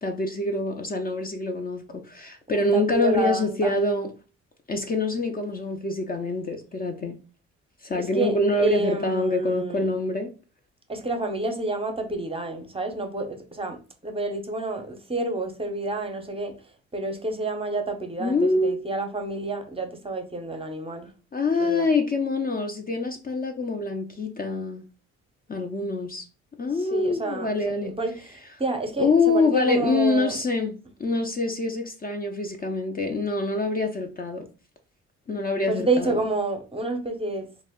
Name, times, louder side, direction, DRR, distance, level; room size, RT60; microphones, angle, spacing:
voice 1, 0.0-4.1 4.7-7.2 7.8-10.3 18.2-18.8 21.3-24.9 25.5-26.3 26.6-28.0 29.0-34.5 35.3-36.2, left 2 dB, 30° left, 0.5 m, -25 dB
voice 2, 2.5-3.8 8.0-9.9 10.9-16.5 16.9-21.1 21.6-21.9 26.8-27.5 27.8-30.4 35.7-37.5, right 2 dB, 20° right, 0.6 m, -29 dB
2.4 x 2.1 x 3.6 m
supercardioid pair, 65°, 31 cm